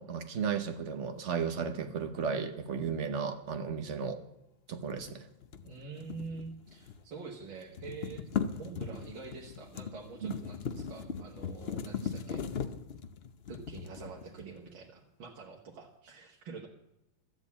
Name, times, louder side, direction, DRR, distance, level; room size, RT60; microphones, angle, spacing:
voice 1, 0.0-4.2 4.7-5.2 10.2-10.3, right 6 dB, 45° right, 8 dB, 1.2 m, -34 dB
sound 1, 4.9-7.1 7.4-14.7, left 6 dB, 75° left, 0.5 m, -39 dB
voice 2, 5.6-12.4 13.5-16.7, right 4 dB, 80° right, -2 dB, 2.2 m, -46 dB
13.0 x 8.0 x 8.5 m, 0.88 s
omnidirectional pair, 2.1 m